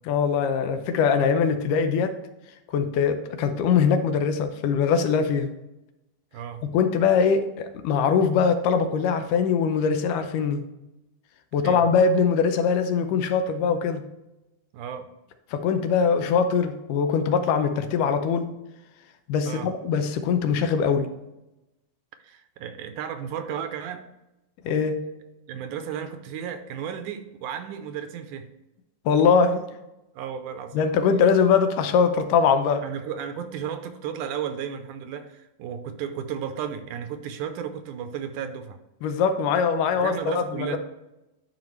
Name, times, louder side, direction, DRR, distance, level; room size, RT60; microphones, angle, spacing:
voice 1, 0.1-2.2 2.7-5.5 6.6-10.6 11.5-14.1 15.5-18.6 19.3-21.1 24.7-25.0 29.1-29.6 30.7-32.8 39.0-40.8, left 6 dB, 85° left, 8 dB, 2.3 m, -22 dB
voice 2, 6.3-6.6 11.6-11.9 14.7-15.1 19.5-19.7 22.2-24.1 25.5-28.5 30.2-30.8 32.8-38.8 40.0-40.8, right 8 dB, 80° right, 8 dB, 2.1 m, -34 dB
10.5 x 4.9 x 3.1 m, 0.95 s
omnidirectional pair, 3.7 m